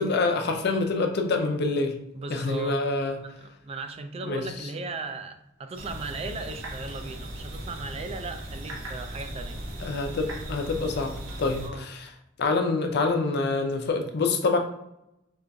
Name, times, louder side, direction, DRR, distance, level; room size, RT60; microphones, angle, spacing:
voice 1, 0.0-2.0 2.3-3.2 4.2-4.4 9.8-12.1 12.4-14.6, left 3 dB, 55° left, 4 dB, 0.5 m, -26 dB
voice 2, 2.1-2.8 3.4-9.6 11.6-11.8, right 3 dB, 30° right, 7 dB, 0.3 m, -37 dB
sound 1, 5.7-11.7, right 1 dB, 85° right, 0.8 m, -38 dB
5.2 x 2.4 x 2.2 m, 0.85 s
head